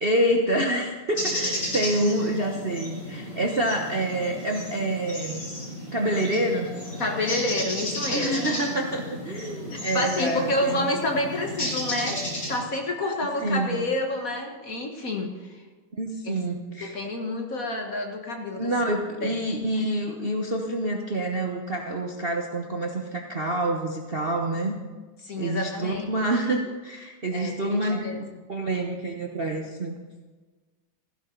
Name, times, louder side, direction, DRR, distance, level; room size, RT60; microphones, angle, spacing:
voice 1, 0.0-5.5 5.9-6.7 8.1-10.9 13.4-13.8 15.9-17.3 18.6-24.8 25.4-29.9, right 1 dB, 35° right, 1 dB, 1.0 m, -27 dB
sound 1, 1.1-12.6, left 1 dB, 60° left, 6.8 m, -33 dB
voice 2, 7.0-8.5 9.9-12.2 12.5-15.3 16.2-18.7 19.2-19.4 25.2-26.0 27.3-28.2, left 2 dB, 45° left, 2 dB, 1.8 m, -29 dB
16.0 x 15.5 x 3.9 m, 1.3 s
omnidirectional pair, 2.3 m